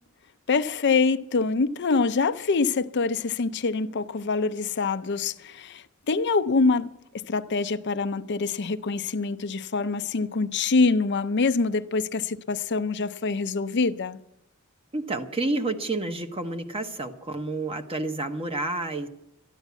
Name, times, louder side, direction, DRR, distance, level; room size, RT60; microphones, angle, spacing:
voice 1, 0.5-6.9 7.1-14.2, left 4 dB, 55° left, 0.6 m, -25 dB
voice 2, 14.9-19.1, right 2 dB, 25° right, 1.0 m, -29 dB
13.5 x 10.0 x 8.2 m
head